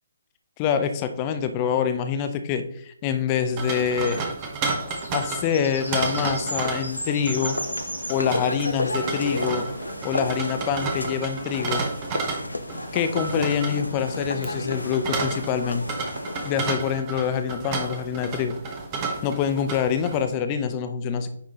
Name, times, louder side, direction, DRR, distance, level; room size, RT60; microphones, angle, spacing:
voice 1, 0.6-4.2 5.1-7.6 8.1-9.7 10.0-11.8 12.9-15.9 16.4-18.5 19.2-21.3, left 7 dB, 25° left, 9 dB, 0.6 m, -25 dB
sound 1, 3.5-20.3, right 4 dB, 25° right, 1.1 m, -32 dB
sound 2, 3.8-8.8, equal, 90° right, 1.4 m, -36 dB
sound 3, 5.8-16.6, left 1 dB, 80° left, 0.6 m, -32 dB
9.6 x 3.7 x 3.6 m, 0.68 s
figure-of-eight pair, 135°, 0 cm